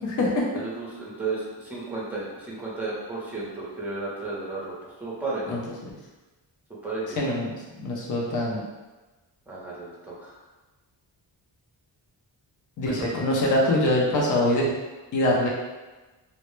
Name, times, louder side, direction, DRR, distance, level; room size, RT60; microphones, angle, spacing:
voice 1, 0.0-0.4 5.5-6.0 7.2-8.6 12.8-14.7 15.1-15.5, left 1 dB, 45° left, -3 dB, 0.5 m, -24 dB
voice 2, 0.5-4.7 5.0-5.6 6.8-7.2 9.5-10.3, right 3 dB, 5° right, -6 dB, 0.6 m, -33 dB
2.1 x 2.0 x 3.0 m, 1.2 s
wide cardioid pair, 135°, 44 cm